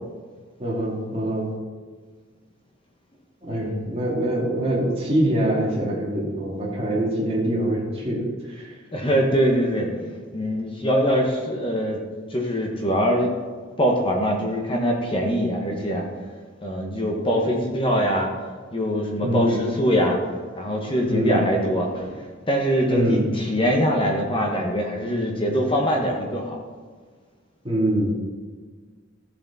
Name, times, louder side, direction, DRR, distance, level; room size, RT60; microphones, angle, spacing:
voice 1, 0.6-1.5 3.4-8.8 19.2-19.6 21.0-21.4 22.8-23.2 27.6-28.2, right 1 dB, 30° right, -4 dB, 2.6 m, -24 dB
voice 2, 3.5-3.9 8.9-12.0 12.3-13.3 13.8-16.1 16.6-18.3 18.7-20.2 20.6-26.6, equal, 25° left, 0 dB, 1.3 m, -23 dB
14.0 x 7.3 x 4.2 m, 1.5 s
head